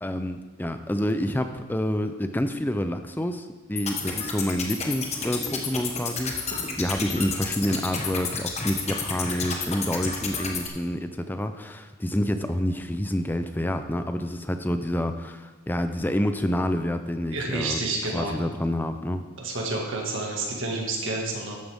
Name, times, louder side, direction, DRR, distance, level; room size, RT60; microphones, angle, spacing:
voice 1, 0.0-17.8 18.1-19.2, left 1 dB, 10° left, 8 dB, 0.5 m, -28 dB
sound 1, 3.8-10.7, left 4 dB, 30° left, 1.2 m, -31 dB
voice 2, 17.3-18.3 19.4-21.5, right 2 dB, 65° right, -1 dB, 2.0 m, -29 dB
13.0 x 9.3 x 3.6 m, 1.3 s
head